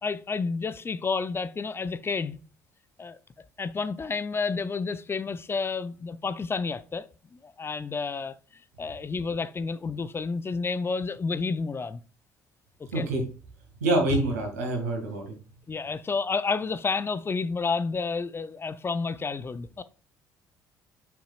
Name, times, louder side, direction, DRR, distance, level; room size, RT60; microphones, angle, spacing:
voice 1, 0.0-2.4 3.0-3.2 3.6-7.0 7.4-8.3 8.8-12.0 12.8-13.1 15.7-19.8, left 4 dB, 30° left, 0.6 m, -30 dB
voice 2, 12.9-13.2 13.8-15.4, right 1 dB, 85° right, 2.2 m, -26 dB
7.1 x 5.9 x 2.5 m
hypercardioid pair, 55°, 8 cm